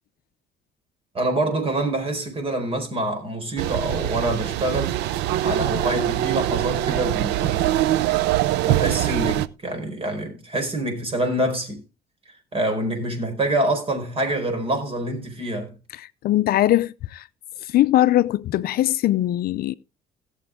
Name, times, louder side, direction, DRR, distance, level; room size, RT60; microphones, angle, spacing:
voice 1, 1.1-5.0 5.4-7.8 8.6-11.8 12.5-15.7, right 1 dB, 35° right, 4.5 m, -26 dB
sound 1, 3.6-9.5, right 13 dB, 90° right, 0.6 m, -23 dB
voice 2, 16.0-17.3 17.6-19.7, left 14 dB, 65° left, 0.5 m, -21 dB
17.5 x 7.1 x 3.6 m
cardioid pair, 110°, 17 cm